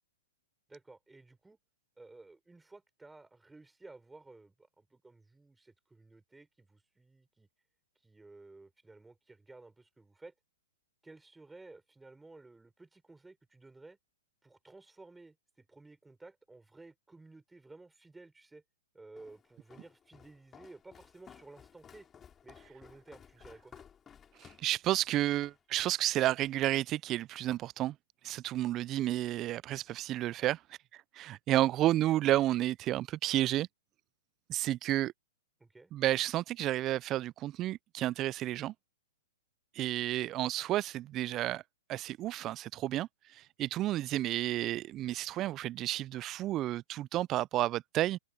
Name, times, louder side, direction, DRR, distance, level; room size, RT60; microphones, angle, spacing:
voice 1, 0.7-1.6 2.0-7.5 8.0-10.3 11.0-14.0 14.4-18.6 18.9-22.1 22.4-23.7 35.6-35.9 36.2-36.3, right 3 dB, 5° right, 4.4 m, -55 dB
Walk footsteps, 19.2-25.6, left 8 dB, 20° left, 5.9 m, -57 dB
voice 2, 24.4-28.0 28.2-30.6 30.9-33.7 34.5-35.1 35.9-38.7 39.8-41.6 41.9-48.2, right 14 dB, 30° right, 0.3 m, -31 dB
open air
hypercardioid pair, 130°, 0 cm